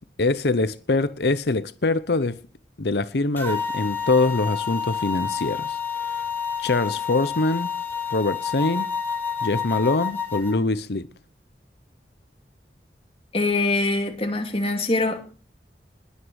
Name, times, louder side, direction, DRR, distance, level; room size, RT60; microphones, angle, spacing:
voice 1, 0.2-2.4 2.8-5.8 6.6-7.7 8.1-8.9 9.4-11.1, left 3 dB, 70° left, 0.8 m, -23 dB
sound 1, 3.4-10.5, left 6 dB, 10° left, 3.2 m, -29 dB
voice 2, 13.3-15.2, left 2 dB, 35° left, 2.7 m, -23 dB
21.0 x 8.3 x 6.4 m
head